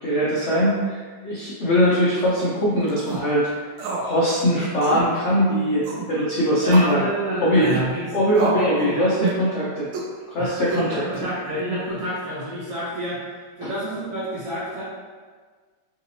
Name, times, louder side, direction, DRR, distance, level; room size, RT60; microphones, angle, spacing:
voice 1, 0.0-3.5 4.0-7.1 7.4-7.7 8.1-9.9 10.3-11.0 13.6-13.7, equal, 80° left, -7 dB, 0.6 m, -21 dB
sound 1, 2.9-3.2 3.8-4.1 4.4-4.5 4.8-5.1 5.8-6.1 6.7-7.0 7.6-7.9 8.3-8.7 9.2-9.4 9.9-10.1 10.7-11.2, right 4 dB, 80° right, 1.3 m, -29 dB
voice 2, 6.6-8.1 8.5-9.1 10.4-13.2 13.6-14.8, right 1 dB, 55° right, -11 dB, 1.0 m, -29 dB
3.9 x 2.7 x 2.7 m, 1.5 s
omnidirectional pair, 2.0 m